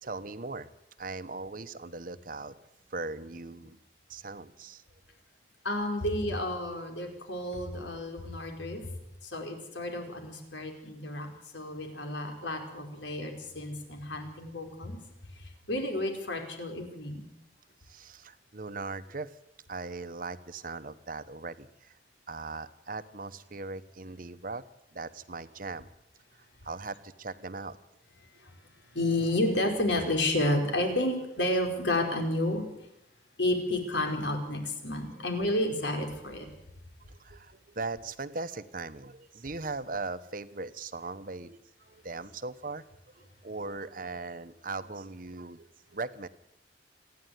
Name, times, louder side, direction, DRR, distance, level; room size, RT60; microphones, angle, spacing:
voice 1, 0.0-0.7 1.0-3.8 4.1-4.8 17.9-19.3 19.7-21.9 22.3-24.6 24.9-25.9 26.6-27.8 37.1-42.8 43.1-46.3, right 3 dB, 50° right, 12 dB, 1.0 m, -39 dB
voice 2, 5.6-8.8 9.2-11.3 11.5-15.0 15.4-17.3 28.4-28.5 28.9-32.6 33.4-36.5, left 1 dB, 80° left, 4 dB, 4.8 m, -31 dB
27.5 x 10.5 x 9.4 m, 0.81 s
head